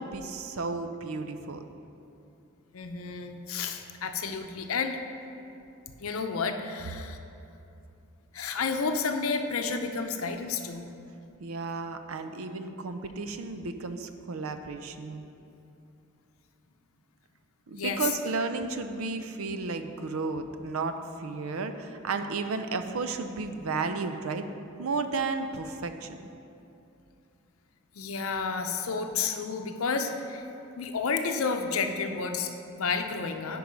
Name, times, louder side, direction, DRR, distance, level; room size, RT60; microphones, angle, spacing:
voice 1, 0.0-1.6 11.4-15.2 17.7-24.5 24.8-26.2, right 4 dB, 85° right, 8 dB, 0.5 m, -33 dB
voice 2, 2.7-5.0 6.0-7.2 8.3-10.8 17.8-18.0 28.0-30.4 30.8-33.6, left 5 dB, 80° left, 6 dB, 0.6 m, -31 dB
10.0 x 4.7 x 5.2 m, 2.7 s
head